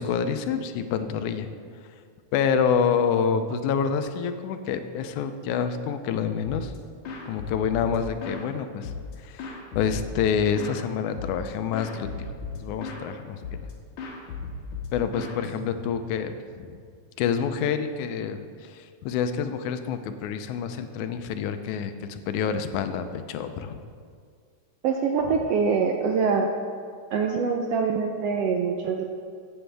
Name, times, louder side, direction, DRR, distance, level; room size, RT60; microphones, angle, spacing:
voice 1, 0.0-1.5 2.3-6.7 7.3-8.9 9.2-13.6 14.9-16.8 17.2-23.8, left 7 dB, 90° left, 9 dB, 2.1 m, -27 dB
sound 1, 6.4-6.8 7.0-8.5 8.8-10.8 11.2-11.5 11.7-13.1 13.4-13.7 14.0-16.1, left 5 dB, 70° left, 2.4 m, -36 dB
voice 2, 24.8-26.5 27.1-29.0, right 5 dB, 80° right, 2 dB, 1.4 m, -24 dB
15.0 x 8.0 x 3.4 m, 2.1 s
omnidirectional pair, 3.4 m